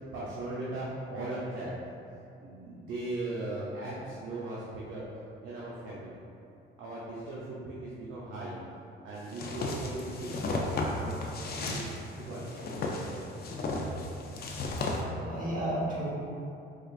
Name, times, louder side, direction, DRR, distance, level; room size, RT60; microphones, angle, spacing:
voice 1, 0.1-1.7 2.4-5.0 5.4-6.2 6.8-8.6 9.0-11.1 11.5-11.9 12.2-12.7, right 2 dB, 85° right, -7 dB, 0.6 m, -38 dB
sound 1, 9.3-15.0, left 2 dB, 50° left, 0.5 m, -34 dB
voice 2, 14.8-16.1, right 1 dB, 40° right, -9 dB, 1.3 m, -34 dB
4.3 x 2.3 x 2.4 m, 2.6 s
cardioid pair, 90°, 20 cm